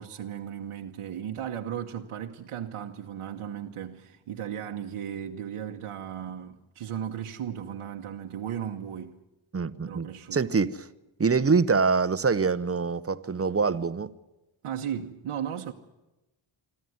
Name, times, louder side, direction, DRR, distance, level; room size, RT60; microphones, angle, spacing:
voice 1, 0.0-9.2 9.8-10.5 14.6-15.7, right 9 dB, 90° right, 1.2 m, -36 dB
voice 2, 9.5-10.1 10.3-10.9 11.2-14.1, right 5 dB, 30° right, 0.9 m, -24 dB
26.0 x 13.0 x 9.4 m
cardioid pair, 90°, 50 cm